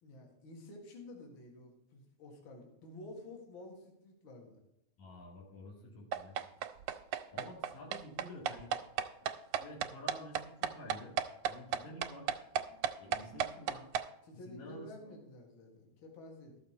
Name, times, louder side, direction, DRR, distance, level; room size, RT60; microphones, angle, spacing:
voice 1, 0.0-4.6 7.3-7.5 14.2-16.6, left 1 dB, 45° left, 0 dB, 2.4 m, -51 dB
voice 2, 5.0-6.4 7.3-8.7 9.2-9.3 9.6-11.2 11.5-12.3 13.0-13.9 14.3-15.2, left 1 dB, 70° left, -2 dB, 3.4 m, -50 dB
sound 1, 6.1-14.1, right 9 dB, 90° right, 2.1 m, -34 dB
13.0 x 7.0 x 4.5 m, 0.88 s
omnidirectional pair, 3.4 m